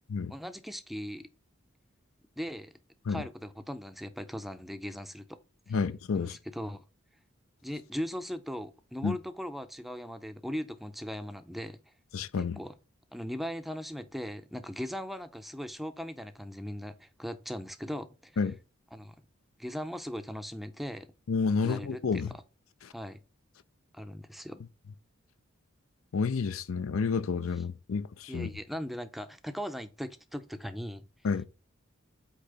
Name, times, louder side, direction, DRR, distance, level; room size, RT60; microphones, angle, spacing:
voice 1, 0.3-1.3 2.4-2.7 3.1-5.4 5.7-5.8 6.1-6.8 7.6-11.8 12.4-12.7 13.1-18.4 18.9-19.2 19.6-21.1 21.6-22.4 22.9-23.2 23.9-24.6 28.3-31.1, equal, ahead, 0.5 m, -39 dB
voice 2, 5.7-6.4 9.0-9.2 12.1-12.6 18.4-18.6 21.3-22.3 26.1-28.5 31.2-31.5, left 5 dB, 80° left, 0.5 m, -30 dB
8.3 x 2.9 x 5.4 m
head